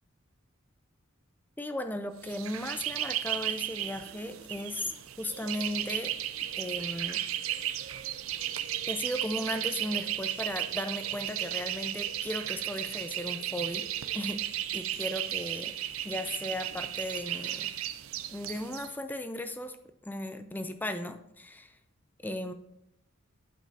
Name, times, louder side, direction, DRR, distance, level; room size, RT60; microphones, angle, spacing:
voice 1, 1.6-4.9 5.2-6.2 6.6-7.2 7.8-7.9 8.9-13.9 14.1-14.4 14.7-15.7 16.0-17.7 18.3-19.8 20.1-21.8 22.2-22.5, left 1 dB, 10° left, 8 dB, 0.5 m, -36 dB
sound 1, 2.2-18.9, right 12 dB, 80° right, 0.5 m, -35 dB
12.0 x 5.2 x 2.8 m, 0.79 s
head